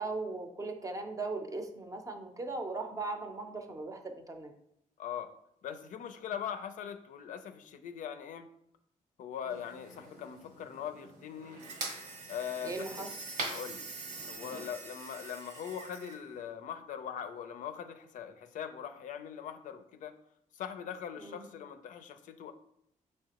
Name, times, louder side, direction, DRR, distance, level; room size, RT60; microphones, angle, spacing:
voice 1, 0.0-4.5 9.5-9.6 12.6-13.1 21.2-21.5, right 3 dB, 25° right, 5 dB, 0.6 m, -38 dB
voice 2, 5.0-5.3 5.6-8.5 9.2-11.6 12.3-13.2 13.4-13.9 14.3-20.1 20.5-22.5, left 8 dB, 75° left, 9 dB, 0.4 m, -41 dB
sound 1, 9.5-14.7, right 2 dB, 80° right, 1.1 m, -44 dB
sound 2, 11.6-16.2, right 4 dB, 60° right, 0.7 m, -46 dB
5.4 x 3.2 x 2.9 m, 0.76 s
cardioid pair, 105°, 13 cm